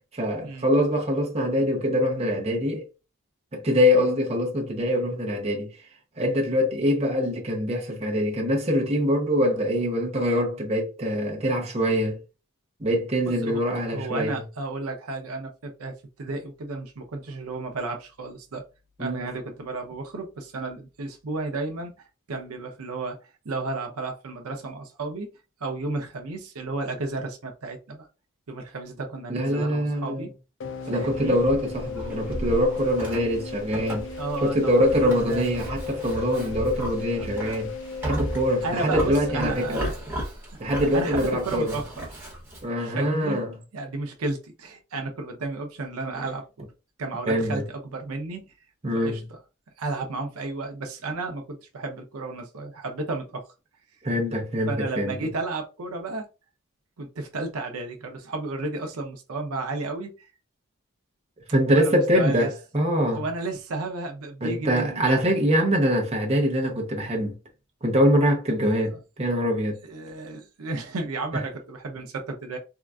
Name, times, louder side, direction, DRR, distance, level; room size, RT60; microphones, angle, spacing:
voice 1, 0.1-2.8 3.5-5.7 6.2-12.2 12.8-14.4 19.0-19.3 29.3-30.3 30.9-34.1 34.4-37.7 38.0-39.8 40.6-41.7 42.6-43.5 47.3-47.6 48.8-49.2 54.0-55.2 61.5-63.2 64.4-67.4 67.8-68.9 69.2-69.8, equal, 30° right, 0.7 m, -24 dB
voice 2, 13.9-18.6 19.0-21.9 22.3-23.2 23.4-25.3 25.6-28.1 28.5-30.3 30.8-31.4 34.2-35.5 36.4-36.5 38.6-40.6 40.9-42.0 42.8-43.4 43.7-46.7 47.0-48.5 49.0-49.2 49.8-53.4 54.7-56.2 57.0-60.3 61.7-62.5 63.1-65.3 69.8-72.6, right 3 dB, 85° right, 0.6 m, -33 dB
sound 1, 30.6-39.7, left 5 dB, 55° left, 0.4 m, -37 dB
Livestock farm animals working animals, 31.0-42.7, right 1 dB, 10° right, 1.2 m, -35 dB
3.7 x 2.4 x 2.3 m
head